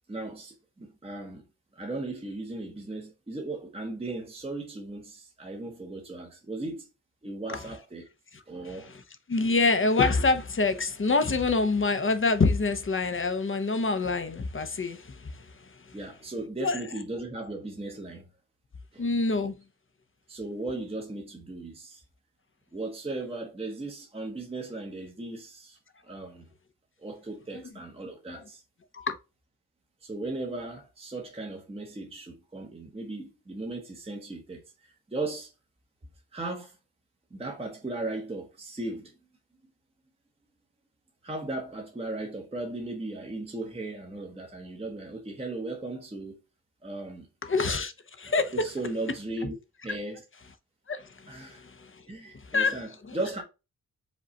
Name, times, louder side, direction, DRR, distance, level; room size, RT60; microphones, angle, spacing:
voice 1, 0.1-1.4 1.8-6.9 7.2-8.1 8.5-8.9 15.9-18.2 18.9-19.1 20.3-22.0 22.7-25.8 26.1-26.5 27.0-28.6 30.0-34.6 35.1-35.5 36.3-36.8 37.3-39.1 41.2-46.4 46.8-47.3 48.3-49.6 49.8-50.2 51.3-51.6 52.1-53.4, right 2 dB, 15° right, 0.8 m, -37 dB
voice 2, 8.3-9.0 9.3-16.0 16.6-16.8 19.0-19.6 27.5-27.6 28.3-28.4 28.9-29.2 47.4-47.9 48.2-48.6 49.9-50.0 50.9-52.0 52.3-53.2, left 3 dB, 35° left, 0.6 m, -27 dB
5.1 x 2.3 x 3.9 m
wide cardioid pair, 120°, 38 cm